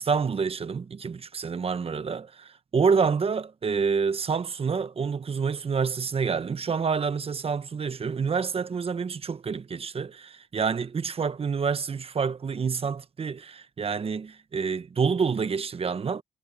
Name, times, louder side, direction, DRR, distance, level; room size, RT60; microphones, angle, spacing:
voice 1, 0.0-16.2, right 5 dB, 40° right, 1.1 m, -28 dB
cardioid pair, 75°, 16 cm